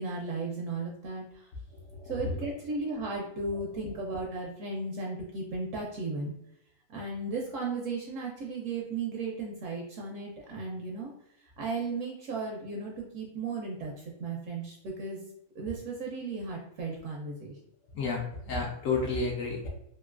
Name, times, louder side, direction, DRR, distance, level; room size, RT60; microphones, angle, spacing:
voice 1, 0.0-1.5 2.0-6.3 6.9-11.1 11.4-15.2 15.5-17.6, right 3 dB, 70° right, -1 dB, 0.8 m, -35 dB
voice 2, 1.8-2.4 17.9-19.7, left 3 dB, 70° left, -1 dB, 0.9 m, -31 dB
3.0 x 2.6 x 2.3 m, 0.79 s
omnidirectional pair, 1.5 m